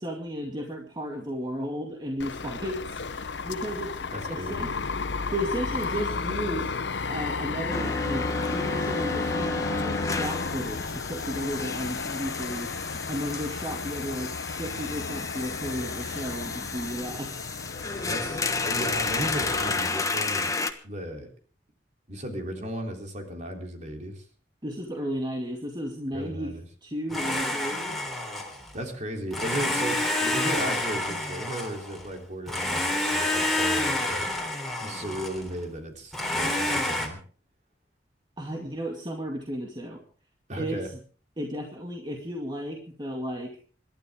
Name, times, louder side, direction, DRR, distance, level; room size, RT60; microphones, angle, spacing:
voice 1, 0.0-3.9 4.3-4.7 5.3-6.8 7.1-14.3 14.6-17.5 24.6-26.5 26.8-28.0 38.4-40.0 40.6-40.8 41.4-43.5, equal, 25° right, 0 dB, 2.4 m, -34 dB
sound 1, 2.2-19.8, left 4 dB, 90° left, 0.8 m, -33 dB
voice 2, 4.1-4.7 18.1-20.5 20.8-21.3 22.1-24.2 26.1-26.6 28.7-34.4 34.8-37.2 40.5-40.9, right 1 dB, 45° right, 3 dB, 3.6 m, -35 dB
sound 2, 7.7-20.7, left 3 dB, 20° left, 1.3 m, -32 dB
Domestic sounds home sounds, 27.1-28.8 29.3-32.1 32.5-35.5 36.1-37.1, left 1 dB, ahead, 3.6 m, -28 dB
27.5 x 12.0 x 3.7 m, 0.42 s
head